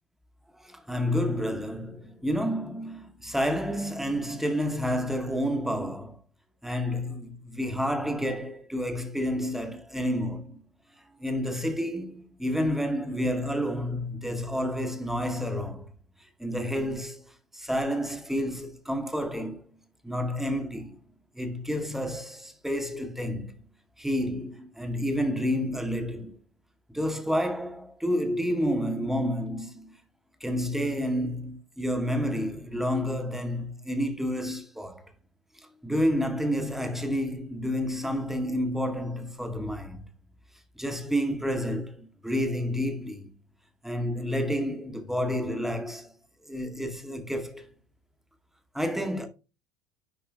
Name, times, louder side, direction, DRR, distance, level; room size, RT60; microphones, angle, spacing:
voice 1, 0.6-6.2 6.6-10.6 11.2-15.9 16.4-17.2 17.5-19.6 20.0-21.0 21.3-23.5 24.0-26.4 26.9-30.0 30.4-35.0 35.8-40.0 40.8-43.3 43.8-46.1 46.4-47.7 48.7-49.3, equal, ahead, 0.8 m, -29 dB
9.8 x 5.3 x 2.2 m
figure-of-eight pair, 65°, 14 cm